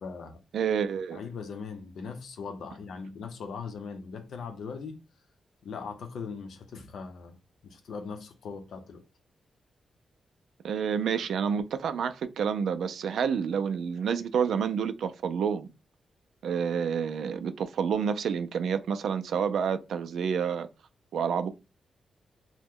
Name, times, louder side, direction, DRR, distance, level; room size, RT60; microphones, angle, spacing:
voice 1, 0.0-0.4 1.1-5.0 5.6-7.4 7.6-9.0, left 5 dB, 80° left, 0.6 m, -40 dB
voice 2, 0.5-1.2 10.6-15.7 16.4-20.7 21.1-21.5, right 7 dB, 80° right, 0.3 m, -29 dB
2.9 x 2.1 x 3.6 m
wide cardioid pair, 140°, 0 cm